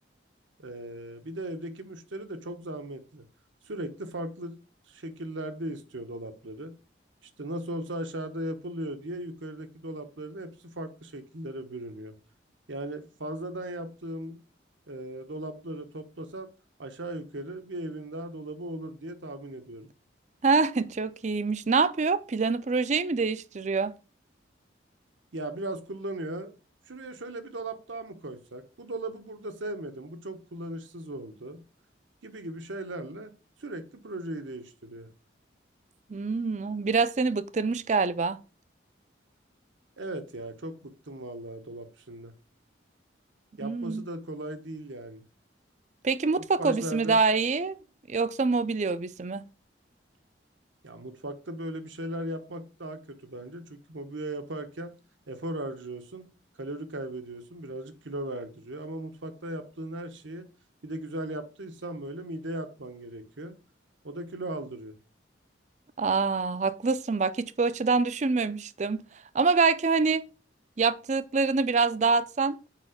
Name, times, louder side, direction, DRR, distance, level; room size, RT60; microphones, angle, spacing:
voice 1, 0.6-3.3 3.7-4.6 4.9-6.7 7.4-12.2 12.7-14.4 14.9-16.5 16.8-19.9 25.3-26.5 26.9-31.6 32.2-33.3 33.6-35.1 40.0-42.3 43.6-45.2 46.4-47.2 50.8-54.9 55.3-56.3 56.6-60.5 60.8-63.6 64.0-65.0, right 1 dB, 85° right, 1.1 m, -37 dB
voice 2, 20.4-23.9 36.1-38.4 43.6-44.0 46.0-47.8 48.1-49.4 66.0-69.0 69.3-70.2 70.8-72.6, right 4 dB, 40° right, 0.4 m, -25 dB
7.3 x 4.9 x 5.0 m
head